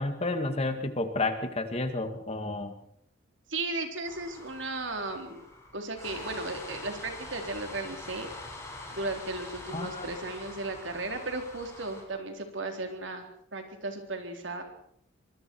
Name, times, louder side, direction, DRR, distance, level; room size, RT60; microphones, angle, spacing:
voice 1, 0.0-2.7 9.7-10.1, left 2 dB, 30° left, 7 dB, 2.0 m, -31 dB
voice 2, 3.5-5.4 5.7-8.3 8.9-14.6, right 2 dB, 70° right, 4 dB, 3.8 m, -35 dB
sound 1, 4.0-12.0, left 2 dB, 15° left, 5.7 m, -44 dB
24.5 x 24.0 x 4.7 m, 0.68 s
head